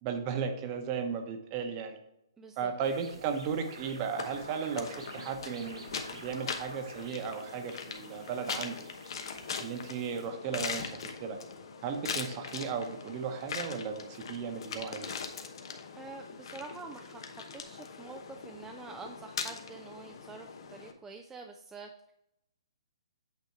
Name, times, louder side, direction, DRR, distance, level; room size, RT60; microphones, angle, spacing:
voice 1, 0.0-2.0 2.6-8.8 9.6-11.4 11.8-15.1, right 6 dB, 30° right, 6 dB, 1.0 m, -35 dB
voice 2, 2.4-2.7 15.9-22.1, right 4 dB, 10° right, 2 dB, 0.4 m, -47 dB
sound 1, 2.8-10.3, right 3 dB, 80° right, 2.1 m, -50 dB
sound 2, 4.2-20.9, left 5 dB, 60° left, 0.9 m, -41 dB
8.5 x 3.4 x 4.6 m, 0.83 s
hypercardioid pair, 140°, 3 cm